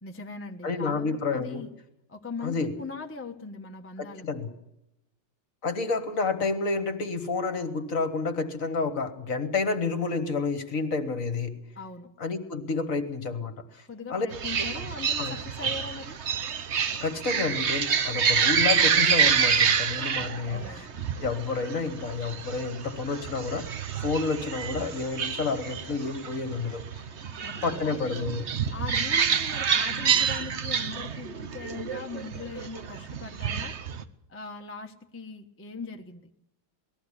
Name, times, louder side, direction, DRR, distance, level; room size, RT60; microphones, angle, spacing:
voice 1, 0.0-1.7 2.1-4.3 11.7-12.1 13.9-16.2 20.1-20.8 27.4-28.3 28.7-33.7 34.3-36.3, left 4 dB, 10° left, 3 dB, 0.9 m, -40 dB
voice 2, 0.6-1.6 2.4-2.7 4.0-4.5 5.6-11.6 12.2-13.8 14.1-14.3 14.7-14.8 15.2-15.3 17.0-20.9 21.2-26.8 27.6-28.4, left 4 dB, 45° left, 9 dB, 1.8 m, -30 dB
sound 1, 14.3-34.0, right 7 dB, 45° right, 1.0 m, -28 dB
19.5 x 14.5 x 9.9 m, 0.83 s
omnidirectional pair, 2.1 m